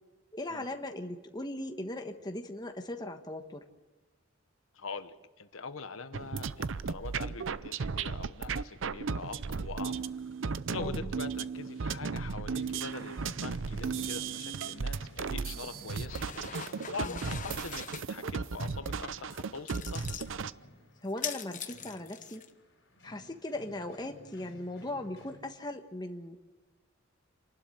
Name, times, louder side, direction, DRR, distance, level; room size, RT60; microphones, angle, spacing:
voice 1, 0.3-3.7 10.7-11.1 17.0-17.2 21.0-22.4 23.0-26.4, left 1 dB, 20° left, 5 dB, 1.3 m, -39 dB
voice 2, 4.7-10.1 10.7-16.2 16.9-20.1, left 4 dB, 90° left, 10 dB, 1.2 m, -43 dB
sound 1, 6.1-20.5, right 5 dB, 70° right, 0.6 m, -35 dB
sound 2, 12.6-25.4, left 1 dB, 65° left, 4.8 m, -55 dB
sound 3, 15.9-18.0 19.7-20.3 21.1-22.5, left 8 dB, 40° left, 1.1 m, -42 dB
27.5 x 12.0 x 9.0 m, 1.3 s
head